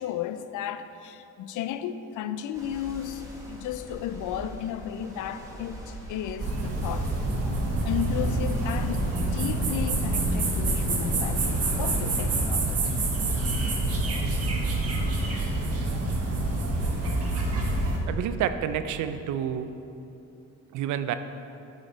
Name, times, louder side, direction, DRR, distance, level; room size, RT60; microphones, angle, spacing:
voice 1, 0.0-7.4 7.8-12.8, left 10 dB, 80° left, 0.5 m, -34 dB
sound 1, 2.5-12.0, right 1 dB, 10° right, 1.6 m, -42 dB
sound 2, 6.4-18.0, right 2 dB, 50° right, 1.2 m, -27 dB
voice 2, 18.1-19.7 20.7-21.2, right 9 dB, 75° right, 0.5 m, -29 dB
9.2 x 5.1 x 3.9 m
cardioid pair, 90°, 30 cm